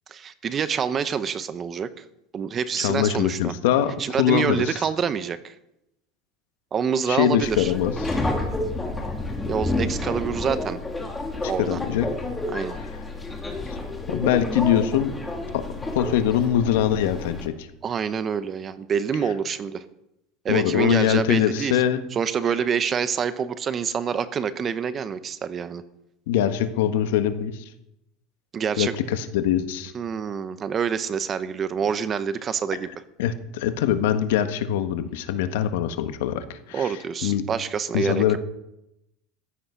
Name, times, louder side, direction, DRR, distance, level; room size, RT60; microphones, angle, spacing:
voice 1, 0.1-2.0 2.3-3.5 4.0-5.5 6.7-7.7 9.5-10.8 11.5-11.8 12.5-12.8 17.8-19.8 20.4-21.8 22.1-25.8 28.5-28.9 29.9-32.9 36.7-38.4, right 7 dB, 30° right, 13 dB, 0.9 m, -26 dB
voice 2, 2.8-4.8 7.1-8.2 11.6-12.1 14.1-15.1 15.5-15.6 15.9-17.7 20.5-22.0 26.3-27.6 28.8-29.9 33.2-36.9 37.2-37.4 37.9-38.4, left 10 dB, 85° left, 9 dB, 1.4 m, -23 dB
Subway metro underground, 7.4-17.5, left 2 dB, 10° left, 2.5 m, -30 dB
14.5 x 11.0 x 5.8 m, 0.86 s
supercardioid pair, 140°, 0 cm